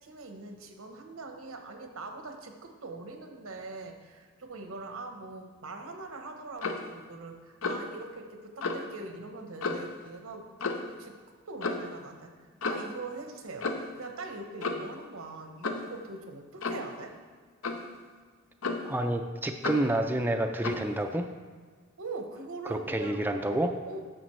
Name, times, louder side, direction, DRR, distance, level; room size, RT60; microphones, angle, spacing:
voice 1, 0.0-10.4 11.0-11.2 11.5-12.3 12.6-13.7 13.9-17.1 22.0-23.2 23.9-24.0, right 3 dB, 85° right, 4 dB, 1.0 m, -42 dB
Clock, 6.6-6.9 7.6-7.9 8.6-8.8 9.6-9.9 10.6-10.9 11.6-11.9 12.6-12.9 13.6-14.0 14.6-14.9 15.6-15.9 16.6-16.9 17.6-17.9 18.6-19.0 19.6-19.9 20.6-20.9, left 3 dB, 80° left, 0.7 m, -33 dB
voice 2, 18.8-21.3 22.7-23.8, right 1 dB, 10° right, 5 dB, 0.3 m, -29 dB
10.0 x 6.9 x 3.1 m, 1.6 s
head